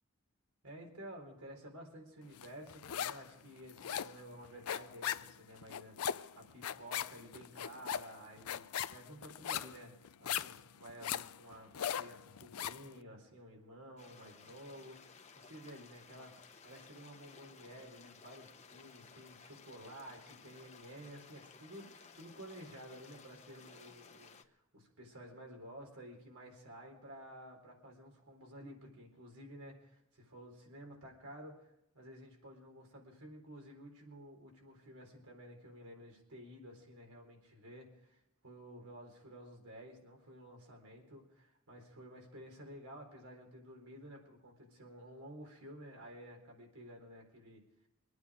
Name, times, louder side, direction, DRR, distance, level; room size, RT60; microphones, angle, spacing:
voice 1, 0.6-47.6, equal, 90° right, 1 dB, 4.1 m, -52 dB
sound 1, 2.4-3.3 3.6-12.9, left 9 dB, 90° left, 0.5 m, -39 dB
sound 2, 14.0-24.4, left 5 dB, 30° left, 0.9 m, -58 dB
24.5 x 9.4 x 5.0 m, 0.85 s
head